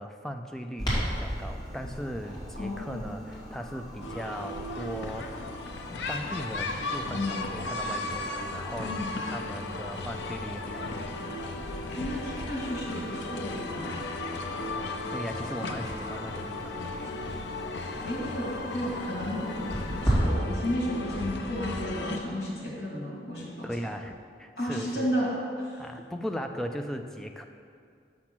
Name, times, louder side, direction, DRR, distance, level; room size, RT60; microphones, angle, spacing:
voice 1, 0.0-5.3 5.8-8.9 9.3-11.2 15.1-16.9 23.6-25.1 25.8-27.5, equal, 5° left, 5 dB, 0.3 m, -38 dB
Clock, 0.8-20.2, equal, 25° left, 2.2 m, -38 dB
voice 2, 2.6-3.1 7.1-7.4 8.8-9.1 12.0-14.0 18.0-23.6 24.6-25.8, equal, 65° left, -5 dB, 2.0 m, -33 dB
sound 1, 4.0-22.2, left 2 dB, 85° left, 0.6 m, -35 dB
6.2 x 5.9 x 6.0 m, 2.3 s
head